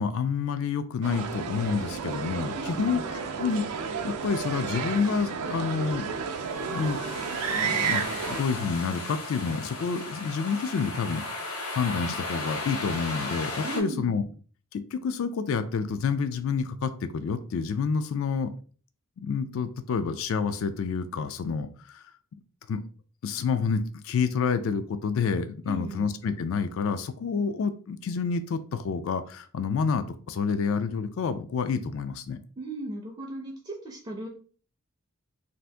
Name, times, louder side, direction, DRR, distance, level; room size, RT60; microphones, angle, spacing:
voice 1, 0.0-6.1 6.6-7.0 7.5-14.2 14.7-18.5 19.2-22.1 22.7-22.8 23.2-32.4, left 5 dB, 65° left, 10 dB, 0.3 m, -29 dB
sound 1, 1.0-8.4, right 6 dB, 90° right, 0.4 m, -32 dB
voice 2, 2.6-3.1 13.6-14.2 25.7-26.1 32.6-34.3, right 2 dB, 20° right, 1 dB, 0.4 m, -37 dB
sound 2, 6.1-13.8, left 2 dB, 85° left, 0.9 m, -36 dB
2.6 x 2.4 x 3.3 m, 0.41 s
head